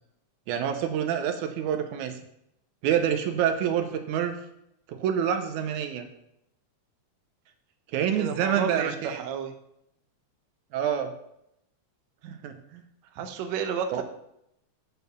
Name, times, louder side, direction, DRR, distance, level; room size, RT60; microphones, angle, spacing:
voice 1, 0.5-2.2 2.8-4.4 4.9-6.1 7.9-9.3 10.7-11.1 12.2-12.8 13.9-14.0, right 8 dB, 85° right, 7 dB, 2.1 m, -27 dB
voice 2, 8.1-9.5 13.2-14.0, right 7 dB, 70° right, 6 dB, 1.9 m, -31 dB
6.7 x 4.4 x 6.7 m, 0.78 s
omnidirectional pair, 3.4 m